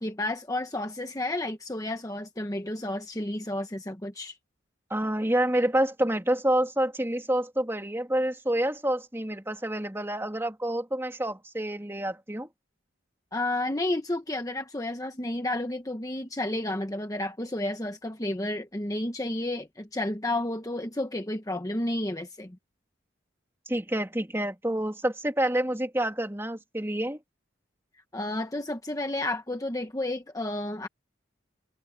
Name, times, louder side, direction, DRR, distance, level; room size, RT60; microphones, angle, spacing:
voice 1, 0.0-4.4 13.3-22.6 28.1-30.9, left 1 dB, 20° left, 1.1 m, -31 dB
voice 2, 4.9-12.5 23.7-27.2, right 1 dB, 15° right, 3.0 m, -28 dB
head